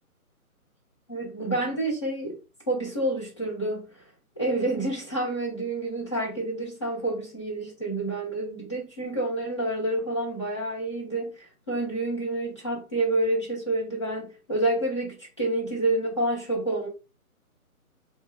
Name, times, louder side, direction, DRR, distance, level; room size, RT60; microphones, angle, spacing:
voice 1, 1.1-2.4 2.7-4.0 4.4-16.9, right 2 dB, 20° left, 0.9 m, -28 dB
3.6 x 2.2 x 3.4 m
hypercardioid pair, 170°, 44 cm